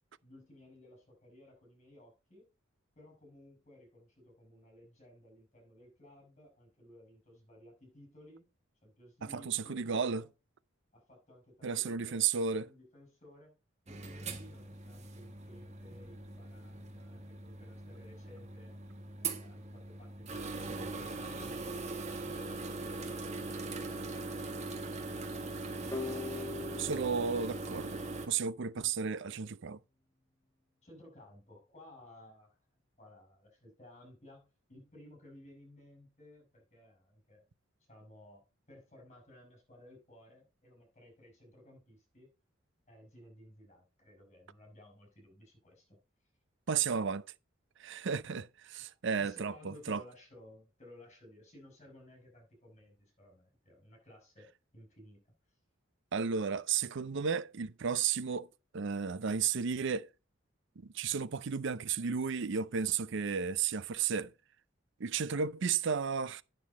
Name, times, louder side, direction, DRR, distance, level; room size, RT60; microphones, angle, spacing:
voice 1, 0.2-2.5 2.9-8.5 8.8-10.3 10.9-13.6 13.8-18.8 19.2-21.9 22.2-25.7 30.8-32.6 33.0-37.4 37.8-42.3 42.9-46.0 49.2-55.2 55.5-55.6, left 1 dB, 35° left, 5.7 m, -57 dB
voice 2, 9.3-10.2 11.6-12.7 26.8-28.0 28.3-29.8 46.7-47.3 47.8-50.0 56.1-60.1 60.8-64.3 65.0-66.4, right 6 dB, 65° right, 0.6 m, -33 dB
sound 1, 13.9-28.3, right 3 dB, 35° right, 1.8 m, -41 dB
sound 2, 25.9-28.7, left 4 dB, 15° left, 0.8 m, -43 dB
9.4 x 6.7 x 4.1 m
head